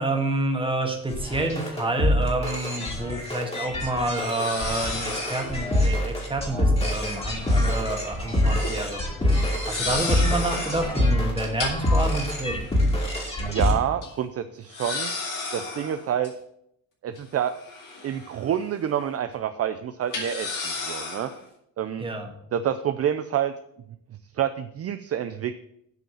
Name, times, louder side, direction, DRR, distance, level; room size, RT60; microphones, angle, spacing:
voice 1, 0.0-12.7 22.0-22.3, right 2 dB, 15° right, 2 dB, 1.6 m, -29 dB
sound 1, 1.1-13.7, left 1 dB, 20° left, 2.4 m, -25 dB
sound 2, 2.6-2.7 4.2-5.7 7.1-8.2 8.5-8.7 9.5-11.0 11.6-13.2 13.6-13.7 14.0-14.1 14.7-16.3 17.2-18.6 18.9-19.0 20.1-21.4, left 3 dB, 65° left, 3.0 m, -34 dB
voice 2, 13.4-15.1 15.5-16.3 17.0-17.5 18.0-21.3 21.8-22.0 22.5-23.5 24.3-25.5, right 9 dB, 45° right, 10 dB, 0.5 m, -28 dB
7.9 x 5.1 x 7.2 m, 0.76 s
cardioid pair, 125°, 34 cm